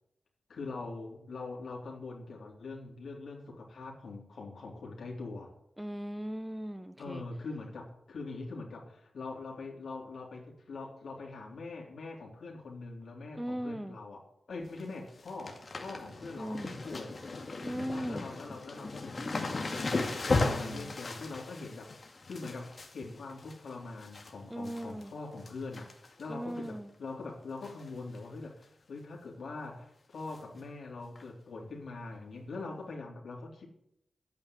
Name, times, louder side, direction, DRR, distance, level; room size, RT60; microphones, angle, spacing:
voice 1, 0.5-5.5 7.0-17.2 17.9-20.1 20.4-21.9 22.3-25.9 26.2-33.7, left 3 dB, 75° left, -1 dB, 3.5 m, -43 dB
voice 2, 5.8-7.2 13.4-14.0 16.4-16.8 17.6-18.3 20.4-20.9 24.5-25.1 26.3-26.9, equal, 5° right, 11 dB, 0.9 m, -38 dB
sound 1, 14.5-14.8 15.1-24.3 24.6-25.1 25.4-26.2 26.6-26.7 27.6-27.9 28.1-28.2 28.6-28.7 30.3-30.4 31.2-31.3, left 3 dB, 45° left, 2.2 m, -36 dB
10.5 x 8.9 x 9.8 m, 0.74 s
cardioid pair, 80°, 0 cm